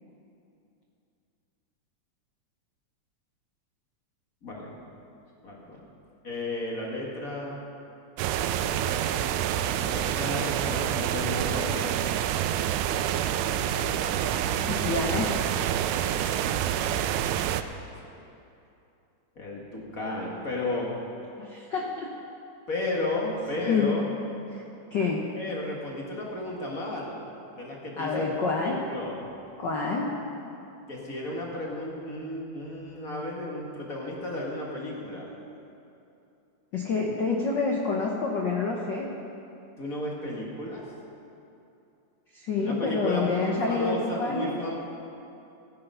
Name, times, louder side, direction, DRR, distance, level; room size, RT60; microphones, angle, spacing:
voice 1, 4.4-4.7 5.4-5.8 6.2-7.6 9.7-11.9 16.1-17.1 18.0-18.2 19.3-20.9 22.7-24.0 25.3-27.1 27.5-28.3 28.6-29.2 30.9-35.3 39.8-40.8 42.6-44.8, left 2 dB, 35° left, -2 dB, 1.7 m, -33 dB
sound 1, 8.2-17.6, right 10 dB, 90° right, 2.0 m, -27 dB
voice 2, 14.6-15.5 21.4-22.1 23.7-23.9 24.5-24.6 24.9-25.3 28.0-28.8 29.6-30.1 36.7-39.1 42.3-44.5, left 4 dB, 80° left, -1 dB, 1.0 m, -28 dB
15.0 x 9.9 x 5.5 m, 2.7 s
omnidirectional pair, 3.4 m